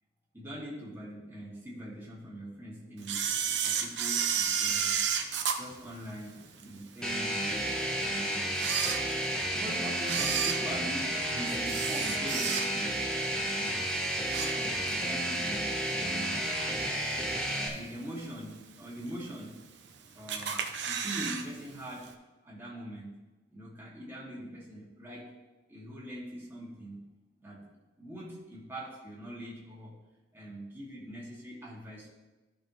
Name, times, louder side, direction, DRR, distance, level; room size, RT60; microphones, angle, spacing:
voice 1, 0.3-3.3 3.6-5.1 5.5-8.7 9.5-13.0 13.5-13.9 14.2-16.5 17.7-19.6 20.1-22.1 22.4-23.2 23.5-25.3 25.7-27.1 27.4-27.7 28.0-30.0 30.3-32.1, equal, 15° right, -6 dB, 2.4 m, -43 dB
Camera, 3.0-6.6 7.1-7.2 7.9-8.0 8.5-9.5 10.0-13.0 13.4-13.6 14.0-15.0 15.4-15.5 16.4-16.5 17.1-17.5 17.9-18.0 18.2-18.3 18.5-18.6 19.3-19.9 20.3-21.4 21.7-21.8 22.1-22.2, right 7 dB, 90° right, 0.8 m, -31 dB
sound 1, 7.0-17.7, right 1 dB, 5° left, 1.2 m, -32 dB
13.5 x 5.8 x 3.2 m, 1.1 s
head